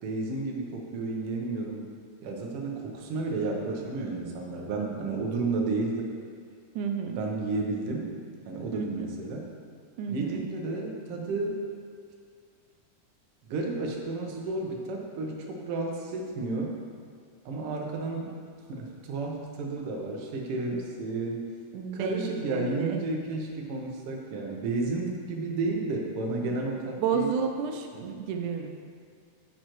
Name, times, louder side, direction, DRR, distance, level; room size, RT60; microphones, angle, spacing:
voice 1, 0.0-1.8 2.2-6.1 7.2-8.1 8.4-9.4 10.1-11.6 13.5-16.7 17.4-18.4 18.7-21.4 21.9-27.3, right 3 dB, 60° right, 0 dB, 1.6 m, -32 dB
voice 2, 6.8-7.2 8.7-9.1 10.0-10.5 20.7-20.8 21.7-23.0 26.4-26.5 27.0-28.7, right 6 dB, 85° right, 4 dB, 2.2 m, -31 dB
9.5 x 7.7 x 3.1 m, 2.2 s
omnidirectional pair, 3.5 m